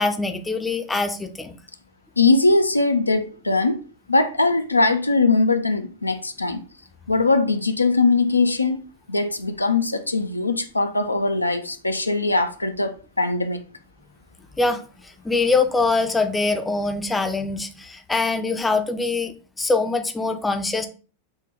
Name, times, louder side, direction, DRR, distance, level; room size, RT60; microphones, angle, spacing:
voice 1, 0.0-1.6 14.6-20.9, left 3 dB, 10° left, 0.5 m, -23 dB
voice 2, 2.2-3.8 4.1-6.6 7.1-8.8 9.1-13.6, left 3 dB, 85° left, 0.4 m, -21 dB
6.0 x 2.2 x 3.3 m
figure-of-eight pair, 90°, 0 cm